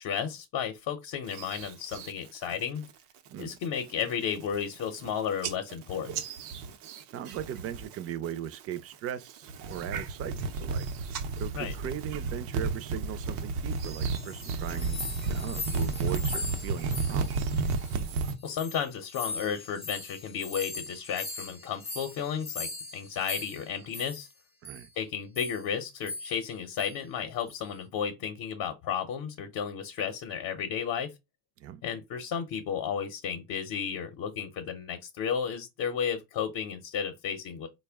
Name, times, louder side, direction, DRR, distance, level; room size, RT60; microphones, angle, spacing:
voice 1, 0.0-2.8 3.4-6.2 11.5-11.7 18.4-24.3 25.0-31.1 31.8-37.7, left 7 dB, 55° left, 0.7 m, -33 dB
sound 1, 1.3-2.1 2.5-2.9 3.3-3.7 4.1-4.2 4.4-5.1 5.4-8.0 8.3-8.8 9.3-18.4, right 4 dB, 90° right, 0.7 m, -33 dB
voice 2, 7.1-10.9 11.4-17.5 24.6-24.9 31.6-31.8, right 10 dB, 35° right, 0.4 m, -38 dB
sound 2, 13.9-18.1 18.4-24.3 24.6-24.9 25.3-25.7 26.0-26.5 26.8-27.0 27.5-27.8, left 3 dB, 15° left, 0.5 m, -40 dB
4.2 x 2.1 x 3.4 m
supercardioid pair, 110°, 44 cm